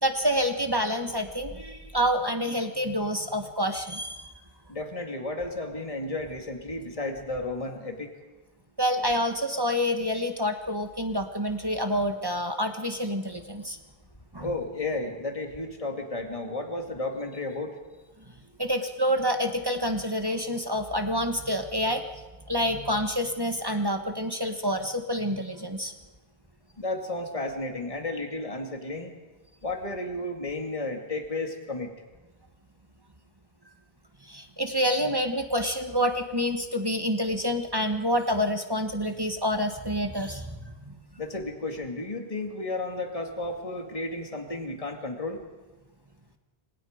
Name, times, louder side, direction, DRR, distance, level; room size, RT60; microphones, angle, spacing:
voice 1, 0.0-4.3 8.8-13.8 14.3-14.5 18.6-22.0 22.5-25.9 34.2-40.9, equal, 20° right, 6 dB, 1.4 m, -28 dB
voice 2, 4.7-8.1 14.4-17.7 26.8-29.1 29.6-31.9 41.2-45.4, left 2 dB, 35° left, 4 dB, 2.4 m, -33 dB
29.5 x 25.5 x 5.1 m, 1.2 s
omnidirectional pair, 1.1 m